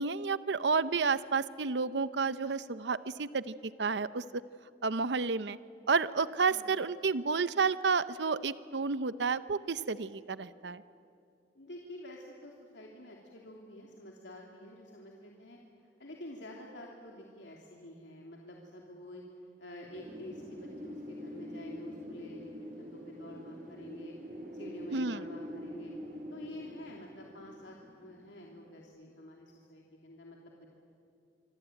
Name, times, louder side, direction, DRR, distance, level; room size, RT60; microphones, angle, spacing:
voice 1, 0.0-4.4 4.8-5.6 5.9-10.8 24.9-25.2, right 4 dB, 75° right, 15 dB, 0.7 m, -31 dB
voice 2, 11.5-19.2 19.6-24.2 24.5-25.9 26.3-30.7, left 1 dB, 85° left, -1 dB, 3.0 m, -49 dB
Wind, 19.9-28.6, equal, 50° right, 4.2 m, -45 dB
26.0 x 25.0 x 9.1 m, 2.5 s
head